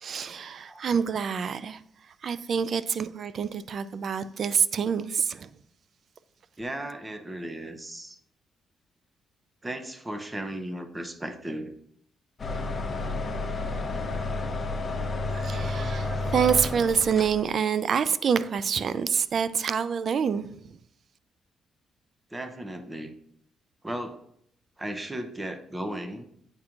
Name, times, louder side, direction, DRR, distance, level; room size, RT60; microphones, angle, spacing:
voice 1, 0.0-1.8 2.2-5.5 15.3-20.8, right 7 dB, 55° right, 0.3 m, -27 dB
voice 2, 6.6-8.2 9.6-11.8 22.3-23.2 23.8-24.2 24.8-26.3, right 1 dB, 15° right, 0.7 m, -36 dB
sound 1, 12.4-17.5, left 2 dB, 35° left, 0.8 m, -31 dB
8.4 x 4.4 x 2.5 m
cardioid pair, 90°, 0 cm